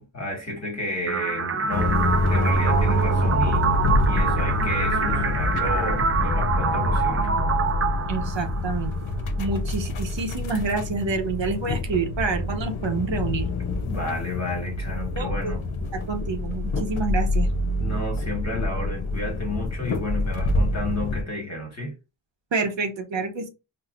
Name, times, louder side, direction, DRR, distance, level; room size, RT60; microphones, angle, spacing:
voice 1, 0.0-7.3 13.8-15.6 17.8-21.9, left 2 dB, 35° left, 1.4 m, -32 dB
sound 1, 1.1-9.0, right 6 dB, 30° right, 0.4 m, -26 dB
sound 2, 1.7-21.2, left 2 dB, 80° left, 0.7 m, -26 dB
voice 2, 8.1-8.9 9.4-13.4 15.2-15.5 16.1-17.5 22.5-23.5, right 4 dB, 65° right, 0.7 m, -28 dB
4.1 x 2.1 x 2.4 m
wide cardioid pair, 55°, 48 cm